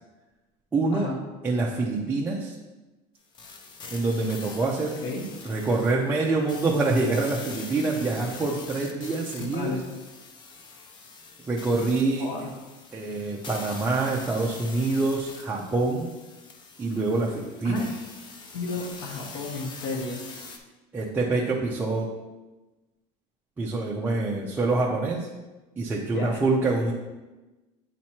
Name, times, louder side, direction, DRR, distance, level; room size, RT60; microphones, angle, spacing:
voice 1, 0.7-1.1 1.4-2.5 3.9-5.0 5.4-9.7 11.5-12.3 12.9-16.1 16.8-17.8 20.9-22.1 23.6-25.3 25.8-26.9, right 3 dB, 15° right, -4 dB, 0.5 m, -26 dB
sound 1, 3.3-20.6, left 4 dB, 30° left, 0.6 m, -44 dB
voice 2, 9.4-9.8 12.2-12.5 17.6-18.0 18.5-20.2 26.1-26.4, left 3 dB, 90° left, -2 dB, 1.2 m, -32 dB
8.5 x 3.0 x 4.3 m, 1.1 s
cardioid pair, 160°, 15 cm